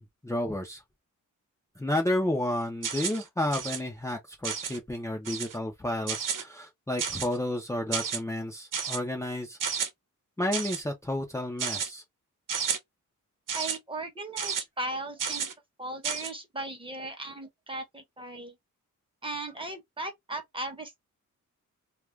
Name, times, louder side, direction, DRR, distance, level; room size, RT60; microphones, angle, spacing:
voice 1, 0.2-0.8 1.8-9.6 10.4-12.0, left 1 dB, 10° left, 0.6 m, -31 dB
sound 1, 2.8-3.2 3.5-3.8 4.4-4.8 5.2-5.6 6.1-6.4 7.0-7.4 7.9-8.2 8.7-9.0 9.6-9.9 10.5-10.8 11.6-11.9 12.5-12.8 13.5-13.8 14.4-14.6 15.2-15.5 16.0-16.3, right 7 dB, 75° right, 0.9 m, -31 dB
voice 2, 13.5-15.5 15.8-18.5 19.2-21.0, right 2 dB, 15° right, 1.0 m, -37 dB
2.4 x 2.4 x 3.1 m
wide cardioid pair, 115°, 32 cm